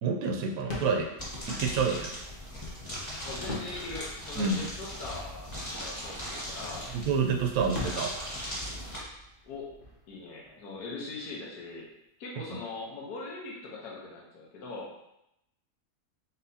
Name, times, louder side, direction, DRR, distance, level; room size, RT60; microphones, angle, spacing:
voice 1, 0.0-1.1 1.5-2.2 4.4-4.6 6.9-8.2, right 5 dB, 70° right, 2 dB, 1.0 m, -28 dB
sound 1, 0.6-11.2, left 2 dB, 40° left, 0.9 m, -45 dB
sound 2, 1.2-9.0, equal, 10° left, 1.5 m, -39 dB
voice 2, 3.2-6.9 9.4-9.7 10.1-11.9 12.2-14.9, left 3 dB, 75° left, -3 dB, 1.4 m, -41 dB
4.3 x 4.1 x 2.7 m, 0.84 s
omnidirectional pair, 1.7 m